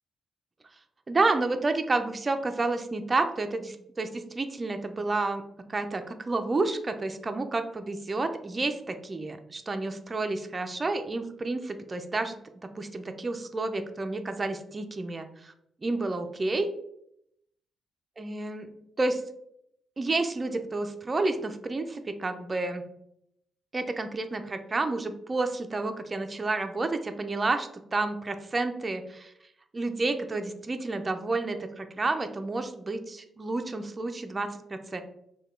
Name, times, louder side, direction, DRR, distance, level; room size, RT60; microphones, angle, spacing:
voice 1, 1.1-5.4 5.7-12.4 12.8-15.5 15.8-16.7 18.2-18.7 19.0-19.2 20.0-22.8 23.7-29.3 29.7-35.0, right 3 dB, 20° right, 7 dB, 0.4 m, -30 dB
4.8 x 2.2 x 4.3 m, 0.77 s
wide cardioid pair, 150°, 0 cm